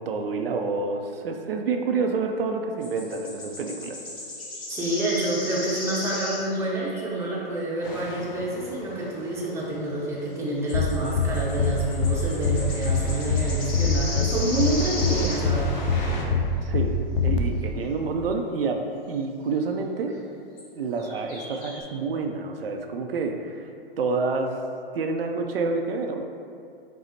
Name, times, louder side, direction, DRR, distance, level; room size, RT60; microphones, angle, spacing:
voice 1, 0.0-4.0 16.6-17.0 17.2-18.8 19.1-20.2 20.8-23.7 24.0-24.6 24.9-26.3, right 4 dB, 75° right, 3 dB, 0.5 m, -28 dB
sound 1, 2.8-7.4 10.7-15.5 18.7-18.8 20.6-20.7 21.0-21.8, left 2 dB, 30° left, 1.3 m, -36 dB
voice 2, 4.7-15.9, right 1 dB, 10° right, -5 dB, 0.7 m, -28 dB
sound 2, 7.8-16.2, left 1 dB, 45° left, 0.9 m, -41 dB
sound 3, 10.7-10.9 11.2-11.3 11.6-11.7 12.0-12.2 12.4-12.6 12.9-13.0 13.3-13.4 13.7-14.3 14.6-14.7 15.0-15.2 15.4-15.6 15.9-16.0 16.3-16.4 16.7-16.9 17.2-17.4, left 7 dB, 70° left, 0.5 m, -22 dB
5.1 x 2.0 x 4.4 m, 2.4 s
hypercardioid pair, 115°, 29 cm